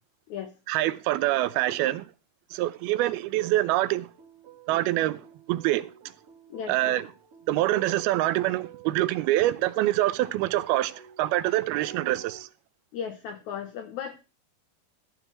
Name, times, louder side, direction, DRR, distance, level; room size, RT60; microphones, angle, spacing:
voice 1, 0.7-2.1 2.5-4.1 4.7-5.2 5.5-5.9 6.7-7.1 7.5-12.5, right 15 dB, 85° right, 2.6 m, -25 dB
sound 1, 3.4-12.4, right 9 dB, 45° right, 2.5 m, -48 dB
voice 2, 6.5-6.9 12.9-14.2, left 8 dB, 80° left, 1.7 m, -36 dB
14.0 x 4.6 x 7.9 m
omnidirectional pair, 4.4 m